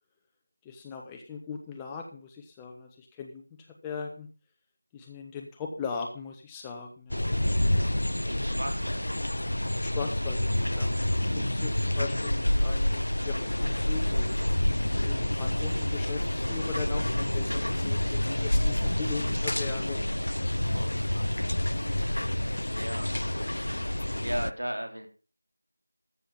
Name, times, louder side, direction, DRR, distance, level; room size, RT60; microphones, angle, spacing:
voice 1, 0.6-3.4 3.8-4.3 4.9-7.2 9.8-14.3 15.0-20.1, left 5 dB, 5° left, 1 dB, 0.7 m, -39 dB
sound 1, 7.1-24.5, left 1 dB, 65° left, 0.6 m, -28 dB
voice 2, 8.2-9.0 15.5-15.8 20.7-21.3 22.0-22.2 22.7-23.1 23.4-23.6 24.2-25.1, right 1 dB, 65° right, 5 dB, 3.5 m, -37 dB
14.0 x 7.0 x 5.3 m, 0.35 s
figure-of-eight pair, 170°, 0 cm